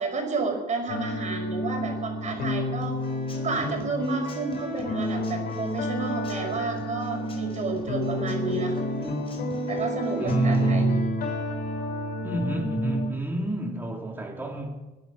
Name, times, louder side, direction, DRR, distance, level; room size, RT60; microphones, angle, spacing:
voice 1, 0.0-3.0 3.4-8.8 9.7-11.0, right 3 dB, 45° right, 5.5 m, -31 dB
sound 1, 0.9-13.1, left 1 dB, 60° left, 5.4 m, -30 dB
Human voice / Acoustic guitar / Drum, 2.8-10.8, left 3 dB, 35° left, 4.9 m, -48 dB
voice 2, 10.2-11.2 12.2-14.9, right 3 dB, 10° right, 3.6 m, -28 dB
22.0 x 10.5 x 6.3 m
cardioid pair, 100°, 17 cm